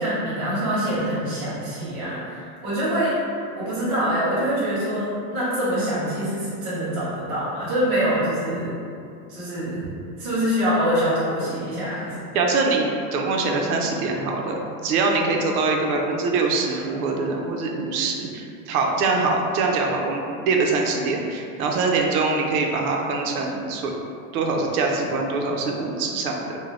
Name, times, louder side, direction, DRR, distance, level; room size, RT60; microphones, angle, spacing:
voice 1, 0.0-3.2 3.6-8.7 9.3-9.8 10.2-12.2 15.1-15.3, equal, 20° right, -12 dB, 0.3 m, -25 dB
voice 2, 12.3-23.9 24.3-26.4, right 3 dB, 80° right, 1 dB, 0.6 m, -23 dB
3.2 x 2.2 x 2.4 m, 2.4 s
supercardioid pair, 175°, 43 cm